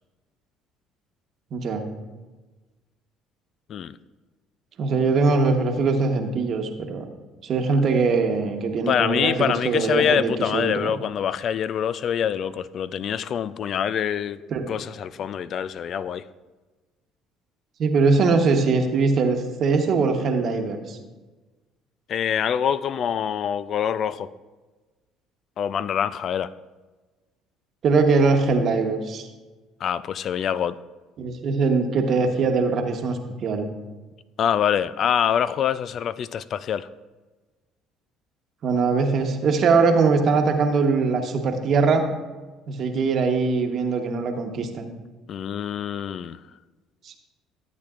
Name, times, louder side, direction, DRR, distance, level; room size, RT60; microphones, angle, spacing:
voice 1, 1.5-1.8 4.8-7.0 7.4-10.9 14.5-14.6 17.8-21.0 27.8-29.3 31.2-33.7 38.6-42.1 42.7-44.9 47.0-47.2, right 4 dB, 55° right, 4 dB, 1.1 m, -22 dB
voice 2, 8.9-14.4 14.7-16.2 22.1-24.3 25.6-26.5 29.8-30.8 34.4-36.9 45.3-46.4, left 8 dB, 55° left, 16 dB, 0.3 m, -25 dB
13.5 x 8.4 x 2.5 m, 1.2 s
supercardioid pair, 90°, 0 cm